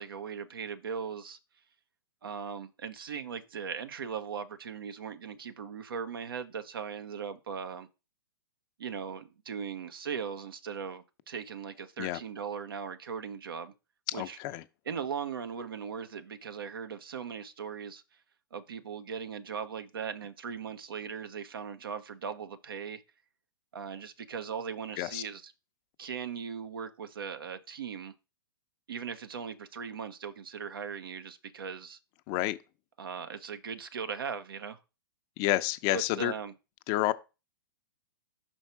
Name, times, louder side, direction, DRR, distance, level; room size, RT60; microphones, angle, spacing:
voice 1, 0.0-1.4 2.2-7.9 8.8-13.7 14.1-14.4 14.9-18.0 18.5-23.0 23.7-25.5 26.0-28.1 28.9-32.0 33.0-34.8 35.9-36.5, right 6 dB, 75° right, 0.9 m, -39 dB
voice 2, 14.1-14.6 25.0-25.2 32.3-32.6 35.4-36.3 36.9-37.1, left 15 dB, 35° left, 0.5 m, -29 dB
5.8 x 4.5 x 4.5 m
hypercardioid pair, 115°, 12 cm